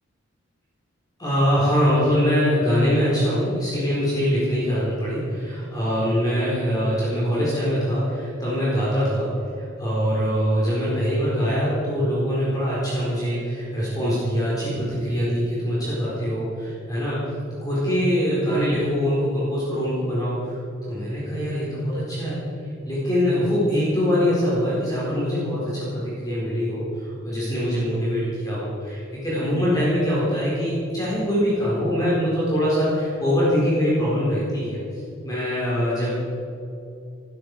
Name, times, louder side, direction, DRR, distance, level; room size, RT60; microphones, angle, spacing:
voice 1, 1.2-9.3 9.6-17.2 17.6-20.5 20.8-22.4 22.8-34.8 35.2-36.1, equal, 20° left, -8 dB, 4.3 m, -23 dB
18.5 x 13.0 x 4.9 m, 2.6 s
head